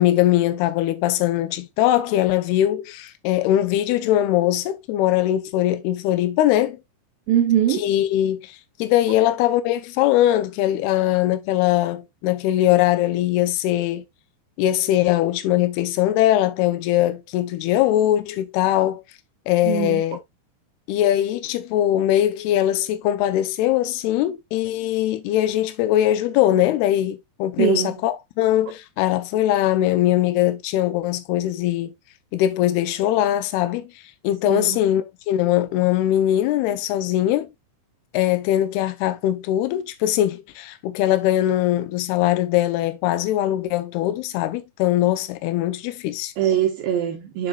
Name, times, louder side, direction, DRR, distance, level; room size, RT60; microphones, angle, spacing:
voice 1, 0.0-6.8 7.7-14.0 14.6-19.0 19.5-20.2 20.9-31.9 32.3-33.9 34.2-37.5 38.1-46.3, left 13 dB, 80° left, 2.3 m, -21 dB
voice 2, 7.3-7.8 19.7-20.0 27.6-27.9 34.5-34.8 46.4-47.5, right 10 dB, 75° right, 2.1 m, -21 dB
7.3 x 7.0 x 2.3 m
omnidirectional pair, 5.5 m